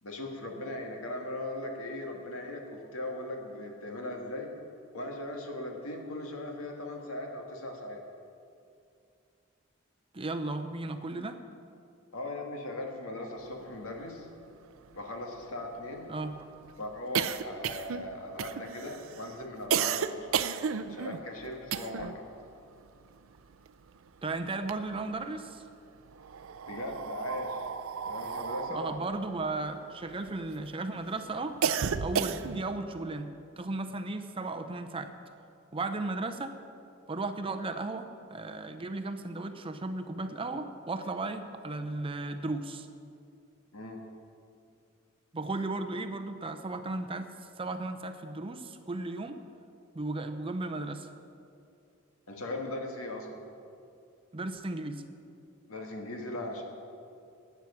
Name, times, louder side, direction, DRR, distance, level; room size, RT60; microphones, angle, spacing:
voice 1, 0.0-4.5 4.9-8.0 12.1-14.3 14.9-16.1 16.8-20.3 20.9-22.1 26.7-27.6 28.1-28.9 43.7-44.0 52.3-53.4 55.7-56.6, left 1 dB, 85° left, 2 dB, 2.0 m, -38 dB
voice 2, 10.1-11.4 16.1-16.4 24.2-25.6 28.7-31.6 32.0-33.3 33.6-35.1 35.7-36.6 37.1-42.9 45.3-47.3 47.6-49.4 49.9-51.1 54.3-55.0, right 2 dB, 25° right, 7 dB, 0.7 m, -35 dB
sound 1, 14.0-14.1 14.4-14.5 14.8-22.2 22.5-24.1 24.4-25.4 26.1-30.6 31.0-32.8, right 7 dB, 70° right, 0.5 m, -33 dB
12.0 x 9.3 x 7.2 m, 2.5 s
head